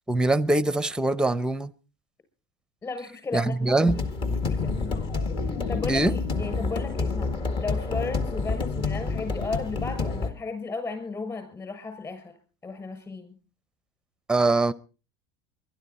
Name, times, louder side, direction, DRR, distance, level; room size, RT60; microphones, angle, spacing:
voice 1, 0.1-1.7 3.3-4.0 5.9-6.2 14.3-14.7, right 2 dB, 5° right, 0.7 m, -23 dB
voice 2, 2.8-4.1 4.4-5.1 5.7-7.3 7.6-12.3 12.6-13.3, left 4 dB, 25° left, 6.7 m, -34 dB
sound 1, 3.9-10.3, left 3 dB, 40° left, 1.9 m, -28 dB
sound 2, 4.5-7.7 8.0-8.4, left 6 dB, 80° left, 1.4 m, -40 dB
23.5 x 12.0 x 4.3 m
supercardioid pair, 115°, 14 cm